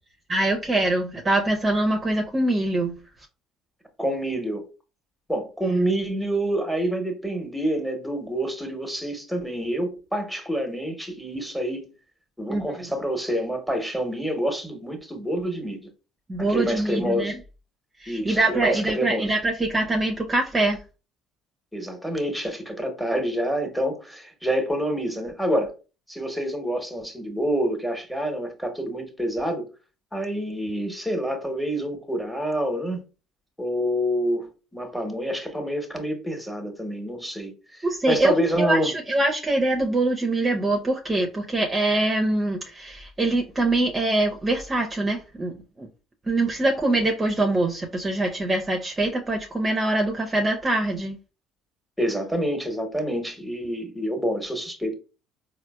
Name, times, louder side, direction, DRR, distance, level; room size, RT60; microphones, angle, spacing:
voice 1, 0.3-2.9 12.5-12.9 16.3-17.4 18.0-20.8 37.8-38.3 38.6-45.9 46.3-51.2, right 2 dB, 25° right, 0.5 m, -24 dB
voice 2, 4.0-4.7 5.3-11.9 12.4-15.9 16.5-17.4 18.1-19.3 21.7-25.7 26.1-29.7 30.1-33.0 33.6-38.9 52.0-54.9, equal, 5° left, 1.0 m, -27 dB
4.3 x 2.0 x 2.2 m
hypercardioid pair, 65°, 0 cm